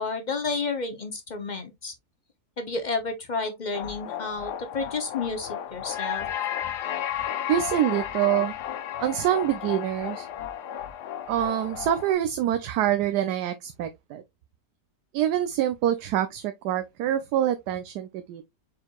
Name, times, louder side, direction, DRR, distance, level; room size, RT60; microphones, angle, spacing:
voice 1, 0.0-1.9 2.6-6.2, left 4 dB, 50° left, 0.5 m, -31 dB
sound 1, 3.7-12.1, left 10 dB, 85° left, 1.3 m, -33 dB
voice 2, 7.5-8.5 9.0-10.3 11.3-14.2 15.1-18.5, right 11 dB, 80° right, 1.2 m, -25 dB
4.8 x 4.4 x 2.3 m
omnidirectional pair, 1.7 m